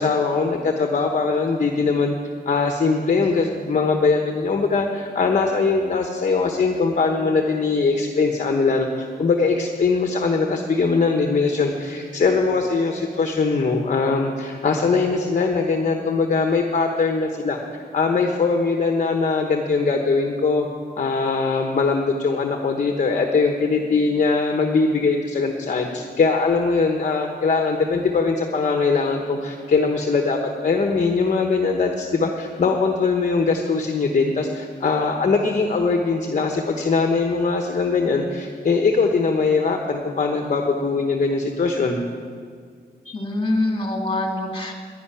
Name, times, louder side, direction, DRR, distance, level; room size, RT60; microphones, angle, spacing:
voice 1, 0.0-2.2 2.5-17.6 17.9-20.7 21.0-42.0, left 4 dB, 45° left, 3 dB, 1.1 m, -21 dB
voice 2, 43.1-44.7, left 2 dB, 30° left, 1 dB, 2.3 m, -24 dB
11.5 x 11.0 x 9.9 m, 2.1 s
wide cardioid pair, 160°, 18 cm